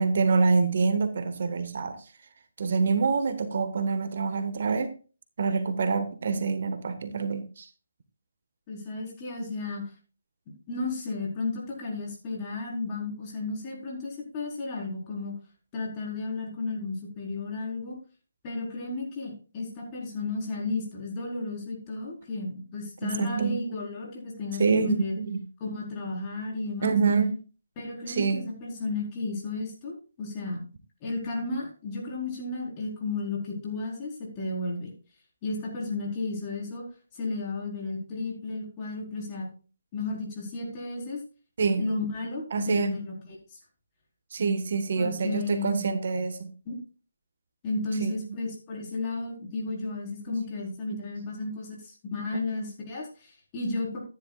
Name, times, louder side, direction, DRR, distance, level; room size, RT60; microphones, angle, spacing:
voice 1, 0.0-2.0 2.6-4.9 5.4-7.7 23.0-23.6 24.6-25.4 26.8-27.3 28.1-28.5 41.6-41.9 42.5-42.9 44.3-46.5 48.0-48.2 50.3-50.4 50.9-51.0 51.4-51.5, right 4 dB, 55° right, 8 dB, 1.5 m, -26 dB
voice 2, 8.7-9.8 10.7-15.3 15.7-18.0 18.4-25.1 25.6-26.9 27.8-30.6 31.0-34.9 35.4-36.8 37.1-39.5 39.9-41.2 41.8-43.1 43.5-43.6 45.0-45.9 46.7-46.8 47.6-54.0, left 3 dB, 25° left, -3 dB, 4.6 m, -33 dB
14.0 x 10.5 x 2.4 m, 0.36 s
figure-of-eight pair, 150°, 0 cm